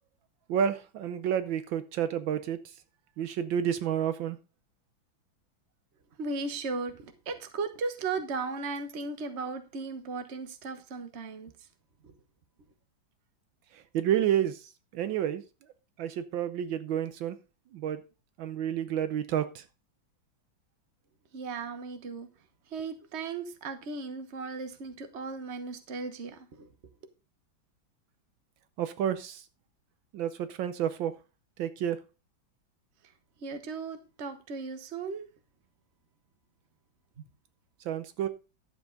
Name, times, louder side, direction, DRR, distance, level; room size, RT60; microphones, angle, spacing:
voice 1, 0.5-2.7 3.2-4.4 13.7-15.4 16.0-17.4 17.7-18.0 18.4-19.6 28.8-29.4 30.1-31.1 31.6-32.0 37.8-38.3, right 9 dB, 75° right, 12 dB, 1.5 m, -30 dB
voice 2, 6.2-11.5 12.0-12.1 21.3-22.3 22.7-26.7 33.4-35.2 37.2-37.3, right 4 dB, 40° right, 8 dB, 1.3 m, -36 dB
11.5 x 7.5 x 3.9 m, 0.31 s
omnidirectional pair, 2.2 m